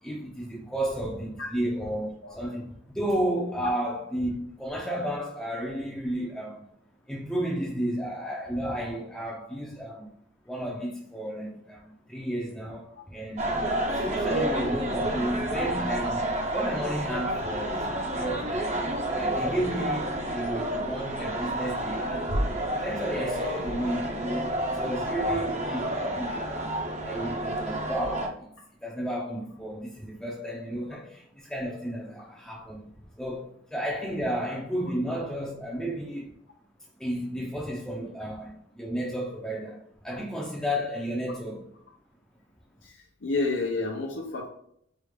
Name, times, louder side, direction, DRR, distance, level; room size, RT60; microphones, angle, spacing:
voice 1, 0.0-6.6 7.1-10.1 10.5-22.3 22.7-28.5 28.8-36.4 37.0-41.7, equal, 5° left, 0.5 m, -33 dB
sound 1, 13.4-28.3, right 1 dB, 35° right, 0.7 m, -30 dB
voice 2, 42.8-44.5, left 3 dB, 75° left, 0.6 m, -30 dB
4.9 x 2.4 x 3.2 m
head